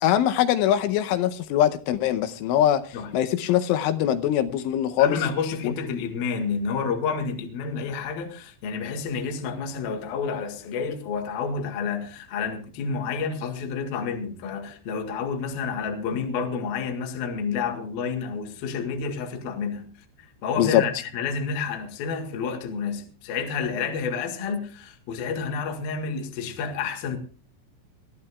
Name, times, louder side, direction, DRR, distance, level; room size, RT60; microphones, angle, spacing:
voice 1, 0.0-2.8 3.1-5.2 5.6-5.7 20.6-20.8, left 11 dB, 85° left, 3.3 m, -22 dB
voice 2, 5.0-19.9 20.2-27.2, left 5 dB, 60° left, 3.3 m, -30 dB
22.0 x 15.0 x 2.4 m
omnidirectional pair, 5.5 m